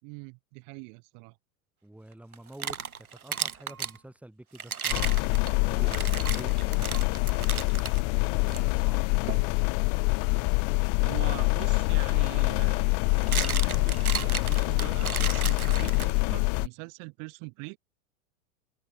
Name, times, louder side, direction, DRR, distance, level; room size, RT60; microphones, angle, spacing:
voice 1, 0.0-1.4 8.4-8.7 11.0-12.9 13.3-17.8, right 36 dB, 45° right, 5.7 m, -43 dB
voice 2, 1.8-2.8 3.2-7.0 7.6-7.7 8.0-9.0, right 1 dB, 5° right, 6.9 m, -48 dB
sound 1, 2.3-4.0 4.5-8.0 8.5-8.6 9.3-9.5 11.6-11.7 12.9-16.4, right 7 dB, 80° right, 3.5 m, -34 dB
sound 2, 4.9-16.7, left 38 dB, 45° left, 1.4 m, -25 dB
hypercardioid pair, 100°, 43 cm